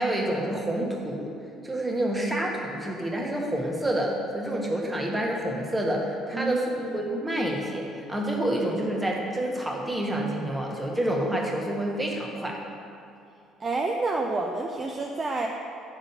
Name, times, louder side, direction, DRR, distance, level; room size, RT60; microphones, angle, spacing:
voice 1, 0.0-1.3 1.6-6.6 6.9-12.6, right 1 dB, 15° right, -1 dB, 1.2 m, -28 dB
voice 2, 6.3-7.0 13.6-15.5, right 3 dB, 35° right, 1 dB, 0.5 m, -29 dB
5.7 x 3.9 x 5.6 m, 2.5 s
hypercardioid pair, 55°, 0 cm